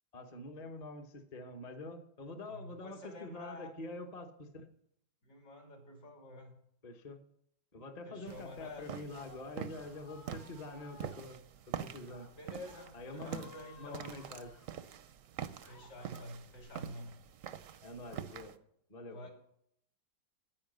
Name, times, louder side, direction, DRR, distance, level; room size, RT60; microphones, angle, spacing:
voice 1, 0.1-4.7 6.8-7.2 7.7-11.4 11.8-12.3 12.9-13.5 13.8-14.5 17.8-18.5 18.9-19.2, left 2 dB, 30° left, 4 dB, 0.8 m, -46 dB
voice 2, 2.5-3.7 5.2-6.5 8.1-8.9 12.4-14.1 15.7-17.1 19.1-19.3, left 1 dB, 65° left, 1 dB, 3.3 m, -49 dB
sound 1, 8.3-18.6, right 9 dB, 65° right, 0.8 m, -46 dB
Screaming, 8.8-11.2 12.0-12.3 12.6-14.7 15.2-16.6, left 3 dB, 80° left, 2.7 m, -58 dB
10.0 x 9.4 x 6.6 m, 0.70 s
omnidirectional pair, 2.0 m